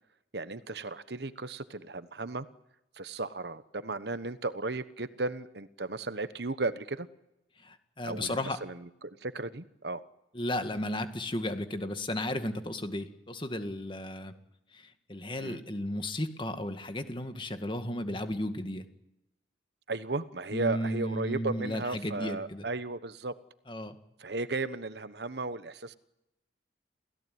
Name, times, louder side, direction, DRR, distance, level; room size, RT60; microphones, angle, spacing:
voice 1, 0.3-2.5 3.0-7.1 8.0-10.0 15.4-15.6 19.9-23.3 24.2-25.9, right 3 dB, 65° right, 13 dB, 1.2 m, -35 dB
voice 2, 7.6-8.6 10.3-14.3 14.7-18.9 20.5-22.7 23.7-24.0, left 1 dB, 25° left, 8 dB, 1.9 m, -34 dB
29.0 x 17.0 x 9.5 m, 0.87 s
head